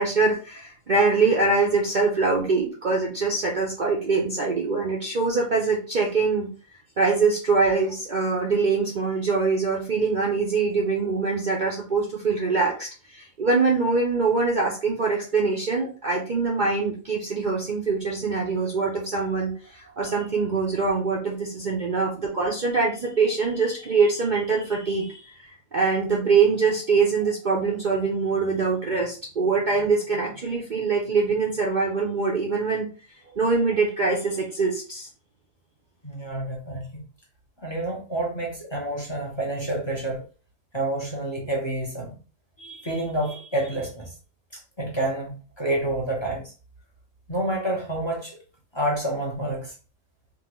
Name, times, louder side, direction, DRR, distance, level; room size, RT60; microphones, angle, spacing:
voice 1, 0.0-6.5 7.0-32.9 33.3-35.1, right 4 dB, 45° right, 0.7 m, -23 dB
voice 2, 36.0-37.0 37.6-40.2 40.7-42.2 42.6-44.1 44.5-46.5 47.3-48.4 48.7-49.7, right 1 dB, 20° left, 0.9 m, -29 dB
3.8 x 2.9 x 3.0 m
omnidirectional pair, 1.4 m